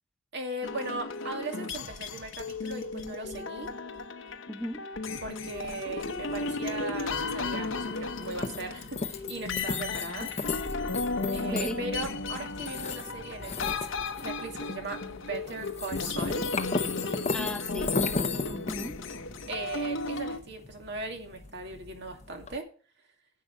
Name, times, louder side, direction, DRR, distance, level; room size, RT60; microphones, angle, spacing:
voice 1, 0.3-3.7 5.2-10.3 11.3-13.8 14.2-16.4 19.5-22.6, right 2 dB, 60° right, 2.3 m, -38 dB
sound 1, 0.6-20.4, left 3 dB, 70° left, 0.9 m, -35 dB
voice 2, 4.5-4.9 10.2-10.3 11.4-11.8 17.3-19.0, equal, 5° left, 0.6 m, -37 dB
sound 2, 6.2-22.6, left 4 dB, 35° left, 0.9 m, -36 dB
10.5 x 6.1 x 6.5 m
head